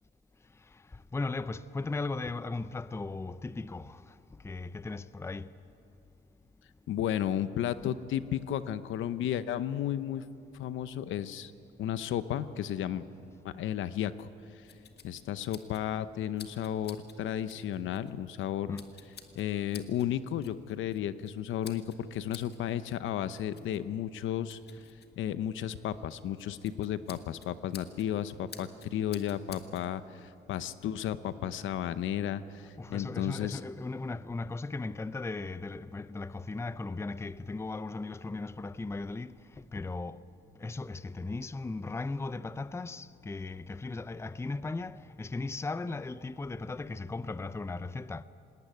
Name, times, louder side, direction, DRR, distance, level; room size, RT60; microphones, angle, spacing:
voice 1, 1.1-4.0 4.4-5.5 18.7-18.9 32.8-39.3 39.7-40.2 40.6-48.2, left 3 dB, 15° left, 0.5 m, -37 dB
voice 2, 6.9-10.2 10.5-11.5 11.8-13.1 13.4-14.6 15.0-18.8 19.3-24.8 25.2-33.6, left 10 dB, 80° left, 0.8 m, -33 dB
sound 1, 14.2-29.9, left 7 dB, 55° left, 1.7 m, -54 dB
19.5 x 18.5 x 9.3 m
cardioid pair, 90°, 20 cm